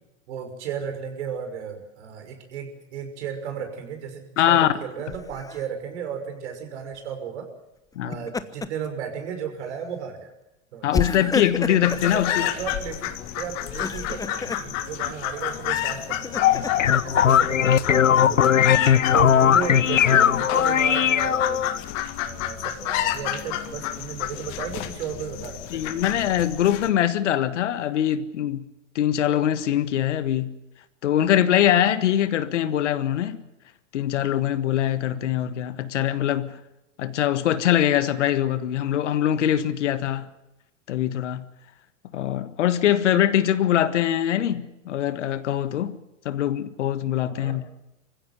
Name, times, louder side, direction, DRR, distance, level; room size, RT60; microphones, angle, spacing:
voice 1, 0.3-7.5 8.0-10.3 10.7-10.9 11.7-16.6 17.0-18.7 19.1-21.6 22.2-25.9 47.2-47.6, right 7 dB, 65° right, 5.9 m, -34 dB
voice 2, 4.4-4.7 7.9-8.2 10.8-12.5 25.7-28.7 28.9-30.5 31.0-33.4 33.9-36.6 37.0-40.3 40.9-41.4 42.1-46.0 46.2-47.6, left 11 dB, 65° left, 1.7 m, -23 dB
Laughter, 5.1-5.6 7.9-8.9 9.3-9.5 10.9-12.1 13.6-14.7 15.7-17.0, left 4 dB, 10° left, 0.9 m, -30 dB
sound 1, 11.8-26.9, left 12 dB, 45° left, 2.0 m, -29 dB
sound 2, 16.5-21.8, left 9 dB, 85° left, 0.7 m, -19 dB
24.0 x 15.5 x 9.6 m
hypercardioid pair, 100°, 38 cm